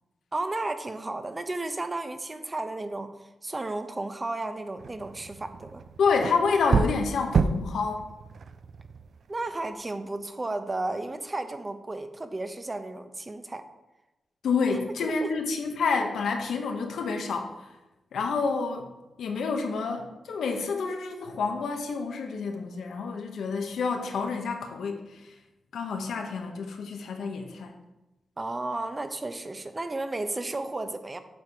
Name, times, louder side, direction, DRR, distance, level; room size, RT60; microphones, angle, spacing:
voice 1, 0.3-3.1 3.4-5.8 9.3-13.6 15.0-15.1 28.4-31.2, right 2 dB, 25° right, 9 dB, 0.7 m, -33 dB
sound 1, 4.8-9.7, right 5 dB, 65° right, 0.4 m, -30 dB
voice 2, 6.0-8.0 14.4-17.5 18.1-18.9 19.2-25.2 25.7-27.7, left 4 dB, 85° left, 4 dB, 1.1 m, -28 dB
7.9 x 4.7 x 4.9 m, 1.0 s
cardioid pair, 85°, 0 cm